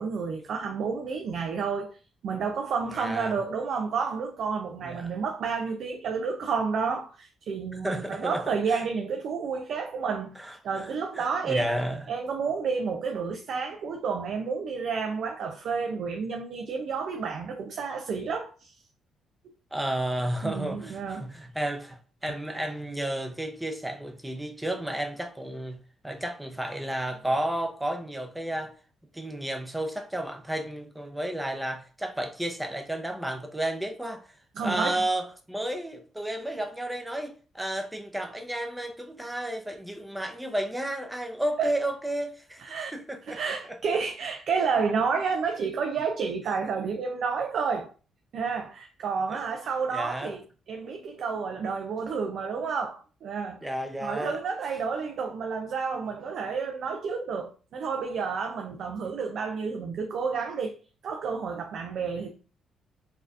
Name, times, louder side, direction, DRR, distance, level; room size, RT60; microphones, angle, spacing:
voice 1, 0.0-2.0 2.2-11.7 12.1-18.7 20.4-21.3 34.6-35.0 41.6-41.7 42.6-42.9 43.3-47.9 48.3-50.4 50.7-53.7 54.0-60.7 61.0-62.3, right 5 dB, 65° right, 0.4 m, -30 dB
voice 2, 3.0-3.4 4.8-5.1 7.8-8.8 10.4-10.9 11.2-12.1 19.7-25.8 26.0-28.7 29.1-34.2 34.6-43.4 49.3-49.4 49.9-50.4 53.6-54.4, right 1 dB, 5° right, 0.6 m, -32 dB
4.1 x 2.7 x 2.4 m
cardioid pair, 90°, 0 cm